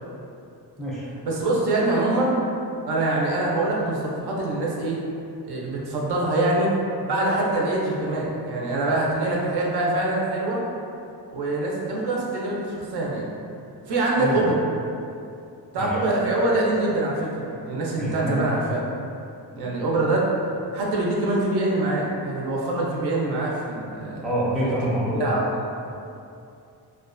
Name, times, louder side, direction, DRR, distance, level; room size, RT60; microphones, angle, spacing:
voice 1, 1.2-2.4 2.9-5.0 5.4-6.7 7.0-10.6 11.3-13.3 13.9-14.5 15.7-18.8 19.6-20.3 20.7-24.3 25.1-25.6, right 2 dB, 75° right, -3 dB, 0.6 m, -24 dB
voice 2, 18.0-18.5 24.2-25.3, equal, ahead, -8 dB, 0.5 m, -26 dB
2.4 x 2.2 x 2.5 m, 2.6 s
cardioid pair, 105°, 39 cm